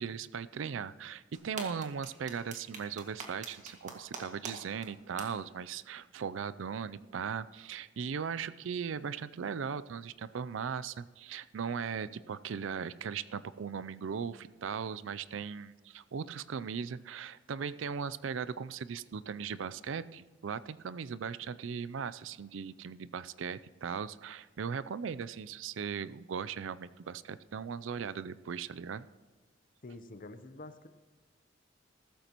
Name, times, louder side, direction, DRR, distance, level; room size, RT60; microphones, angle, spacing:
voice 1, 0.0-29.1, right 6 dB, 80° right, 16 dB, 0.4 m, -38 dB
sound 1, 1.3-4.5 4.8-4.9 5.2-5.3, right 4 dB, 40° right, 1.9 m, -42 dB
voice 2, 29.8-30.9, left 2 dB, 45° left, 11 dB, 0.7 m, -47 dB
14.5 x 13.5 x 3.0 m, 1.4 s
head